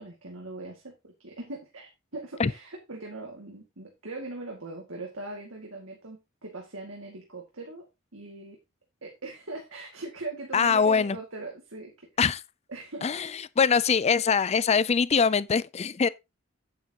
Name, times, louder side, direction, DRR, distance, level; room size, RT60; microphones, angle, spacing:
voice 1, 0.0-7.9 8.1-8.6 9.0-12.1 12.7-13.4, right 2 dB, 90° right, 2.2 m, -40 dB
voice 2, 10.5-11.2 12.2-12.4 13.0-13.3 13.6-16.1, left 6 dB, 30° left, 0.4 m, -23 dB
9.0 x 8.8 x 3.0 m
head